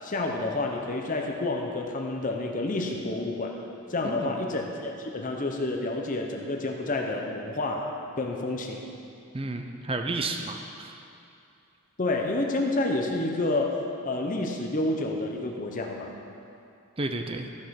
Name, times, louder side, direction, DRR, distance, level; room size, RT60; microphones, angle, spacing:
voice 1, 0.0-3.6 3.9-8.8 12.0-16.1, left 2 dB, 35° left, 1 dB, 0.8 m, -29 dB
voice 2, 9.3-11.0 17.0-17.5, right 2 dB, 25° right, 5 dB, 0.5 m, -32 dB
14.0 x 5.4 x 5.8 m, 2.6 s
head